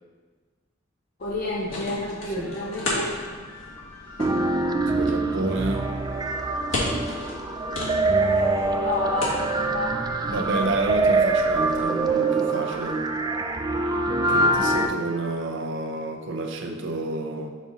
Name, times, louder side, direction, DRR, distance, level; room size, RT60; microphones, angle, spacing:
sound 1, 1.2-12.1, left 1 dB, 75° left, 1.6 m, -35 dB
voice 1, 1.2-3.2 7.7-10.5, left 2 dB, 45° left, -3 dB, 0.6 m, -31 dB
sound 2, 2.4-15.4, left 2 dB, 10° left, 1.2 m, -46 dB
sound 3, 4.2-14.9, right 2 dB, 20° right, 0.3 m, -24 dB
voice 2, 4.9-5.9 10.3-13.0 14.3-17.5, right 2 dB, 65° right, 4 dB, 0.7 m, -29 dB
5.2 x 4.0 x 5.0 m, 1.5 s
head